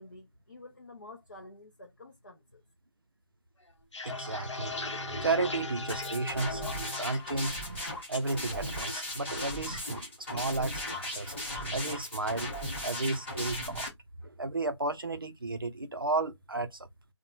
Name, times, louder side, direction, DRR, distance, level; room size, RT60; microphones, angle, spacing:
voice 1, 0.0-2.6, left 2 dB, 40° left, 0.5 m, -50 dB
sound 1, 3.7-7.3 7.7-8.2 8.6-9.0 9.3-10.5 10.9-11.1 11.4-11.9, left 3 dB, 65° left, 0.8 m, -40 dB
voice 2, 4.0-4.7 5.1-7.6 8.1-11.3 11.6-13.9 14.2-16.9, right 3 dB, 45° right, 0.5 m, -33 dB
Bowed string instrument, 4.1-7.8 8.1-8.2, left 1 dB, 5° right, 0.7 m, -43 dB
sound 2, 5.9-13.9, left 1 dB, 20° left, 1.1 m, -37 dB
2.5 x 2.1 x 2.9 m
figure-of-eight pair, 175°, 16 cm